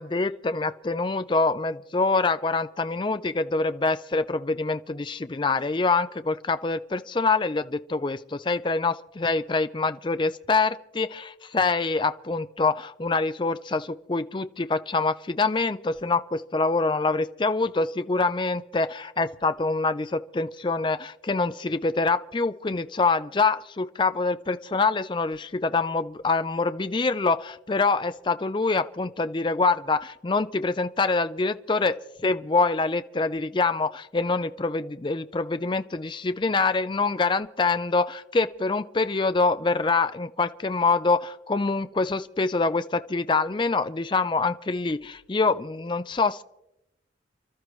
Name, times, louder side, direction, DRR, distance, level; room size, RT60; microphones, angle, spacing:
voice 1, 0.0-46.4, left 3 dB, 25° left, 12 dB, 0.4 m, -25 dB
29.5 x 13.0 x 3.1 m, 0.89 s
head